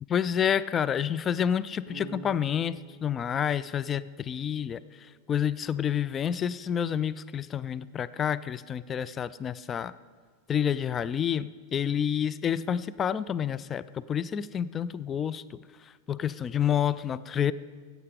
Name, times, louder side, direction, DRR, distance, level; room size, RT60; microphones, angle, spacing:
voice 1, 0.1-4.8 5.3-9.9 10.5-15.6 16.1-17.5, left 8 dB, 25° left, 16 dB, 0.3 m, -29 dB
Bass guitar, 1.9-4.9, right 1 dB, 80° left, 2.1 m, -48 dB
15.0 x 8.1 x 5.1 m, 1.5 s
figure-of-eight pair, 90°, 0 cm